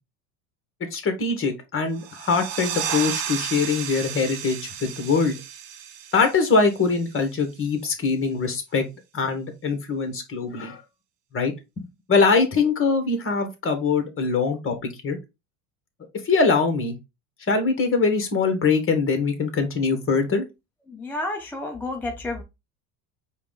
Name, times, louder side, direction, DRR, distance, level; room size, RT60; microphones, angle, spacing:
voice 1, 0.9-5.3 6.1-8.8 9.1-10.8 11.3-15.2 16.2-16.9 17.5-20.4, left 4 dB, 25° left, 1.4 m, -23 dB
sound 1, 1.9-7.3, right 9 dB, 80° right, 0.9 m, -33 dB
voice 2, 20.9-22.4, left 2 dB, 5° left, 0.3 m, -30 dB
4.7 x 2.4 x 3.6 m
supercardioid pair, 100°, 47 cm